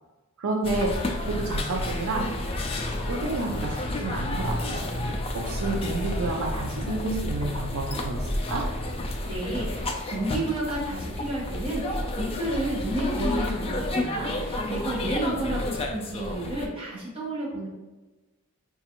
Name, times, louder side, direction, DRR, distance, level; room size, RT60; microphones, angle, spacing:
voice 1, 0.4-0.9 1.3-2.2 3.1-4.8 5.1-8.6, right 2 dB, 75° right, 1 dB, 0.5 m, -30 dB
sound 1, 0.6-16.7, left 1 dB, 25° left, 0.3 m, -30 dB
voice 2, 9.2-17.7, right 1 dB, 25° right, -6 dB, 1.1 m, -31 dB
4.8 x 2.4 x 2.9 m, 1.1 s
head